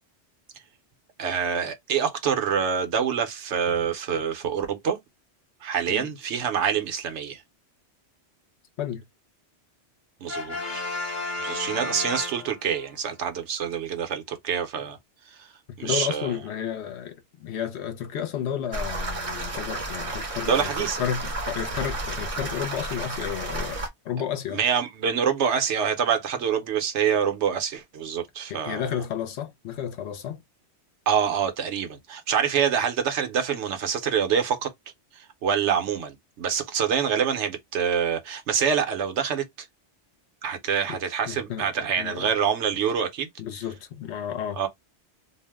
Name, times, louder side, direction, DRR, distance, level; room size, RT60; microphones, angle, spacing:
voice 1, 1.2-5.0 5.6-7.4 10.2-10.8 11.4-15.0 15.3-15.5 15.8-16.4 20.5-21.0 24.5-29.0 31.1-34.7 35.2-39.4 40.4-43.3 44.6-44.7, right 7 dB, 75° right, 1.0 m, -26 dB
Brass instrument, 10.3-12.9, left 3 dB, 45° left, 1.0 m, -33 dB
voice 2, 15.7-20.7 21.0-23.8 24.0-24.6 28.5-30.4 41.3-41.7 42.0-42.3 43.4-44.7, left 9 dB, 70° left, 0.9 m, -32 dB
sound 1, 18.7-23.9, right 2 dB, 40° right, 0.6 m, -32 dB
2.5 x 2.0 x 3.4 m
omnidirectional pair, 1.2 m